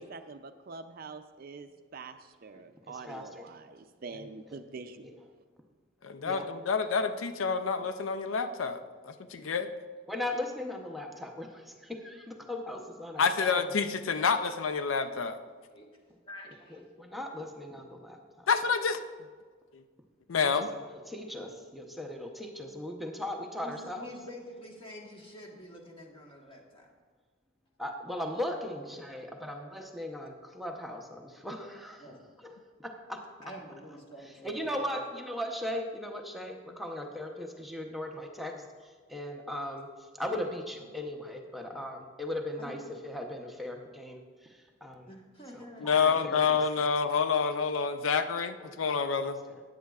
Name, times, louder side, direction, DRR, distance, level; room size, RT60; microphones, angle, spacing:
voice 1, 0.0-5.3, right 4 dB, 50° right, 9 dB, 0.4 m, -45 dB
voice 2, 2.9-3.5 4.5-4.6 5.0-5.1 6.2-6.5 10.1-13.6 16.7-18.5 20.4-20.6 20.9-24.1 27.8-32.0 32.4-32.5 33.1-33.2 34.4-45.1 45.5-46.6 48.6-48.7 49.2-49.6, left 1 dB, ahead, 2 dB, 0.7 m, -38 dB
voice 3, 6.0-9.7 13.2-15.4 18.5-19.0 19.7-19.8 20.3-20.7 45.8-49.4, left 5 dB, 90° left, 10 dB, 0.5 m, -28 dB
voice 4, 16.2-16.8 23.6-26.9 32.0-32.3 33.4-35.0 42.6-42.7 45.1-46.4, left 1 dB, 30° left, 0 dB, 1.3 m, -48 dB
14.0 x 9.1 x 2.4 m, 1.5 s
head